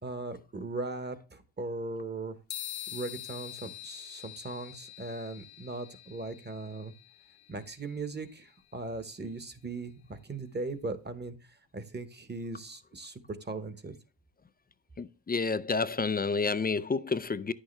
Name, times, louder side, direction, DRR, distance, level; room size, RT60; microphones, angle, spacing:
voice 1, 0.0-2.4 2.9-6.9 7.5-11.3 11.7-13.9, right 3 dB, 25° right, 1.1 m, -38 dB
sound 1, 2.5-10.2, left 13 dB, 90° left, 0.9 m, -46 dB
voice 2, 15.0-17.5, left 4 dB, 20° left, 0.4 m, -29 dB
10.0 x 6.5 x 3.2 m
cardioid pair, 120°, 45 cm